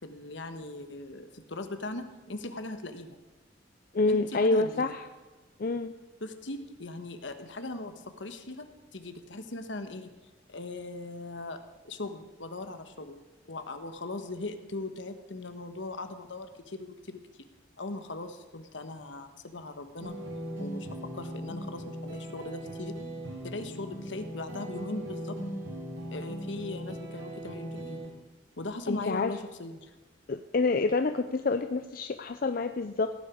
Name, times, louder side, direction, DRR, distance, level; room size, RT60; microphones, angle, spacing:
voice 1, 0.0-3.2 4.0-4.9 6.2-10.1 10.5-13.2 13.5-17.2 17.8-20.1 20.6-20.9 21.1-23.0 23.4-25.4 26.1-28.0 28.6-29.9, left 2 dB, 75° left, 8 dB, 1.3 m, -39 dB
voice 2, 3.9-5.0 5.6-5.9 28.9-29.3 30.3-33.1, left 3 dB, 50° left, 8 dB, 0.5 m, -27 dB
sound 1, 20.0-28.1, equal, 75° right, 3.2 m, -39 dB
17.0 x 9.2 x 5.0 m, 1.3 s
head